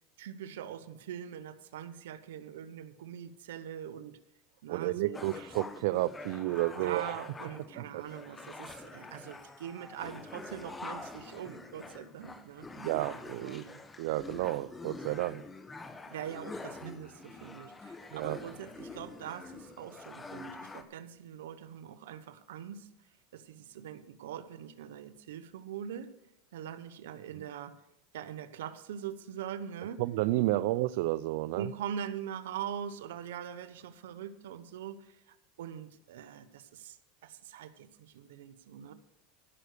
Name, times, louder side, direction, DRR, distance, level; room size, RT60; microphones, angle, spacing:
voice 1, 0.2-4.2 4.6-5.2 6.5-12.7 13.4-13.8 16.1-22.9 23.3-26.1 26.5-27.8 28.1-30.0 31.5-37.0 37.2-38.9, right 9 dB, 85° right, 12 dB, 1.0 m, -42 dB
voice 2, 4.7-7.1 7.8-8.0 12.8-13.7 14.0-15.4 18.1-18.4 30.0-31.7, right 17 dB, 70° right, 14 dB, 0.4 m, -31 dB
sound 1, 5.1-20.8, left 3 dB, 15° left, 1.1 m, -46 dB
15.5 x 6.5 x 6.7 m, 0.82 s
supercardioid pair, 120°, 0 cm